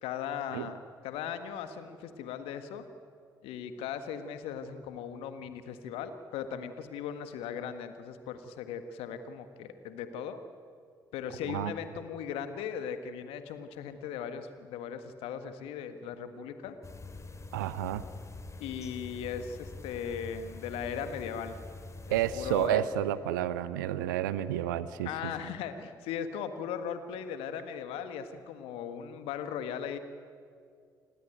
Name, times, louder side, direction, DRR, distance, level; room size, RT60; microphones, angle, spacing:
voice 1, 0.0-0.8 1.0-2.8 3.4-10.4 11.1-16.8 18.6-21.6 22.1-22.8 25.0-30.0, left 8 dB, 65° left, 10 dB, 1.6 m, -38 dB
sound 1, 16.8-22.7, left 2 dB, 30° left, 3.0 m, -45 dB
voice 2, 17.5-18.0 22.1-25.3, right 11 dB, 75° right, 16 dB, 0.8 m, -30 dB
28.5 x 18.5 x 9.3 m, 2.3 s
figure-of-eight pair, 45°, 10 cm